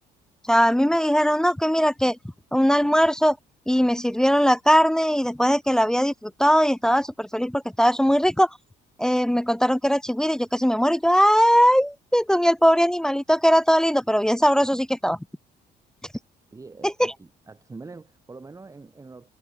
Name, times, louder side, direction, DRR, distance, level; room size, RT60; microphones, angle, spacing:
voice 1, 0.5-2.2 2.5-3.4 3.7-8.5 9.0-15.2 16.8-17.1, equal, 5° left, 0.7 m, -20 dB
voice 2, 16.5-19.3, right 3 dB, 20° right, 1.9 m, -44 dB
cardioid pair, 110°, 17 cm